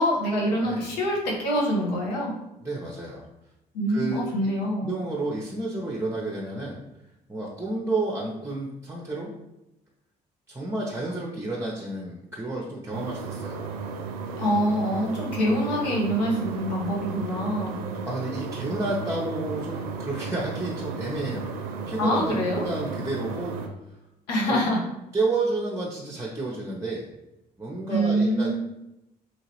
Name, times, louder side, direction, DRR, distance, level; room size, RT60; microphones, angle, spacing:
voice 1, 0.0-2.3 3.7-4.9 14.4-17.8 22.0-22.6 24.3-24.8 27.9-28.6, equal, 85° left, -2 dB, 0.8 m, -25 dB
voice 2, 2.6-3.2 3.9-4.3 4.8-6.8 7.3-9.3 10.5-13.6 18.1-21.5 21.9-23.5 24.5-24.6 25.1-27.1 27.6-28.6, right 2 dB, 15° right, -3 dB, 0.7 m, -30 dB
sound 1, 12.9-23.7, right 4 dB, 80° right, 0.5 m, -34 dB
3.0 x 2.8 x 2.9 m, 0.90 s
hypercardioid pair, 45°, 21 cm